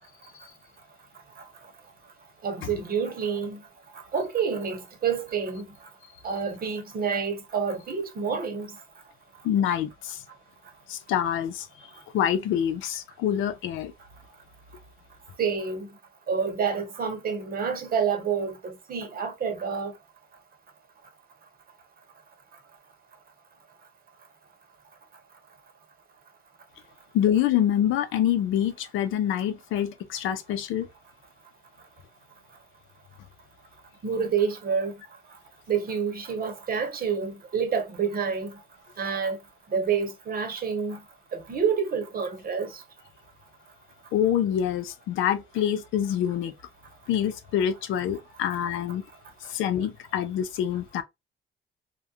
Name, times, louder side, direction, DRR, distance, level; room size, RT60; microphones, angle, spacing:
voice 1, 2.4-3.6 4.1-5.7 6.2-8.7 15.4-15.9 16.3-19.9 34.0-34.9 35.7-38.5 39.0-39.4 39.7-41.0 41.3-42.8, right 6 dB, 50° right, 0.9 m, -28 dB
voice 2, 9.4-10.2 10.9-11.7 12.1-13.9 27.1-30.9 44.1-46.5 47.1-49.0 49.5-51.0, left 10 dB, 90° left, 0.5 m, -26 dB
2.3 x 2.2 x 2.6 m
cardioid pair, 90°, 20 cm